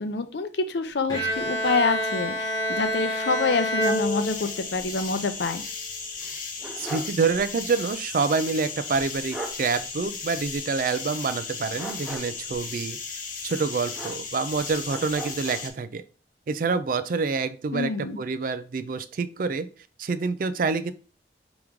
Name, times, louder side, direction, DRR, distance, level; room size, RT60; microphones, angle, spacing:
voice 1, 0.0-5.6 17.7-18.2, left 4 dB, 60° left, 9 dB, 0.5 m, -27 dB
Bowed string instrument, 1.1-4.8, equal, 20° left, 1.0 m, -28 dB
sound 1, 3.8-15.7, left 5 dB, 45° left, 1.0 m, -36 dB
sound 2, 6.2-7.2 7.6-7.7 8.9-9.0 9.3-9.6 11.7-12.5 13.9-14.5 14.9-15.7, right 2 dB, 5° right, 0.7 m, -38 dB
voice 2, 6.8-13.2 13.4-16.0 16.5-19.7 20.0-20.9, right 4 dB, 50° right, 13 dB, 0.4 m, -27 dB
4.9 x 3.0 x 3.6 m, 0.36 s
head